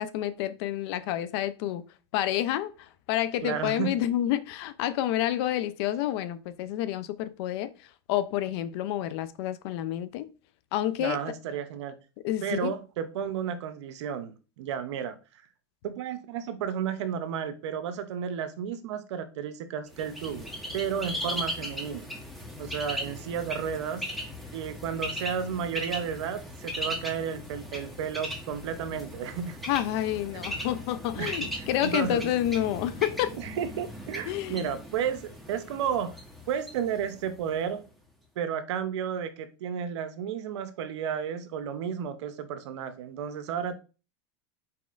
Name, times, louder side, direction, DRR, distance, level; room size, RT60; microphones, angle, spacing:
voice 1, 0.0-1.8 2.1-7.7 8.1-10.3 10.7-11.2 12.2-12.7 29.7-33.4 34.3-34.7, left 12 dB, 65° left, 0.5 m, -29 dB
voice 2, 3.4-3.9 11.0-12.0 12.4-15.2 15.8-22.1 22.6-24.1 24.5-29.6 31.2-32.3 33.4-36.1 36.5-37.8 38.4-43.7, right 8 dB, 80° right, 0.7 m, -32 dB
Bird, 19.9-37.7, equal, ahead, 1.1 m, -38 dB
4.2 x 4.1 x 2.5 m
supercardioid pair, 115°, 15 cm